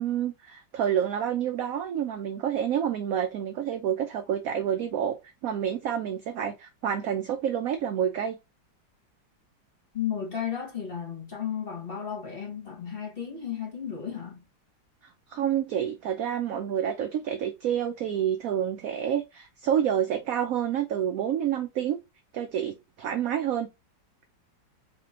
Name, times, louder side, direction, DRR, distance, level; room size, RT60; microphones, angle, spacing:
voice 1, 0.0-5.1 5.4-8.4 15.3-22.0 22.3-23.7, right 9 dB, 75° right, 0.8 m, -28 dB
voice 2, 9.9-14.4, left 8 dB, 30° left, 1.5 m, -34 dB
4.1 x 3.0 x 3.6 m
omnidirectional pair, 2.0 m